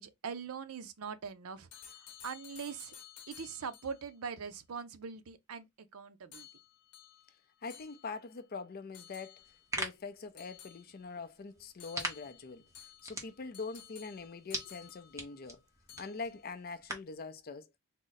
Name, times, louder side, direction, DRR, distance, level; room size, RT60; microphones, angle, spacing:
voice 1, 0.0-1.7 2.2-2.9 3.3-5.7 5.9-6.5, right 6 dB, 75° right, 0.5 m, -42 dB
sound 1, 1.7-4.1 6.3-8.4 8.9-9.7 10.4-11.3 11.8-15.5 15.9-16.4, left 9 dB, 80° left, 0.8 m, -55 dB
voice 2, 7.6-9.4 9.7-12.6 13.0-15.6 16.0-17.7, left 4 dB, 45° left, 0.5 m, -43 dB
sound 2, 9.4-17.2, right 1 dB, 15° right, 0.9 m, -44 dB
3.7 x 2.1 x 3.9 m
head